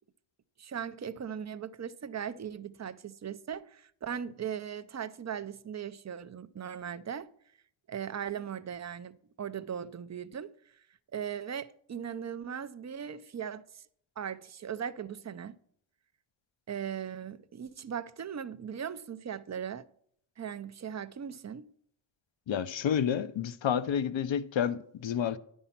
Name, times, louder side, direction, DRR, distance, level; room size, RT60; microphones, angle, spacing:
voice 1, 0.6-7.3 7.9-10.5 11.1-13.8 14.2-15.6 16.7-19.8 20.4-21.7, right 8 dB, 35° right, 0.5 m, -38 dB
voice 2, 22.5-25.4, left 8 dB, 65° left, 0.7 m, -30 dB
9.9 x 5.5 x 5.8 m
cardioid pair, 45°, 49 cm